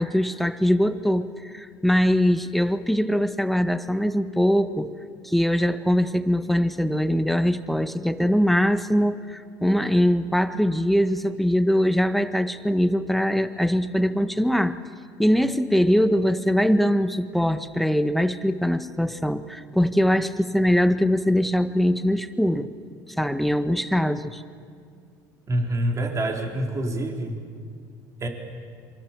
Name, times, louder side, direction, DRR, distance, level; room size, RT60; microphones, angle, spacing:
voice 1, 0.0-5.0 5.2-14.8 15.2-22.7 23.2-24.4, equal, ahead, 10 dB, 1.4 m, -22 dB
voice 2, 25.5-27.4 28.2-28.3, right 1 dB, 35° right, 2 dB, 4.1 m, -26 dB
27.0 x 24.0 x 7.4 m, 2.1 s
hypercardioid pair, 80°, 9 cm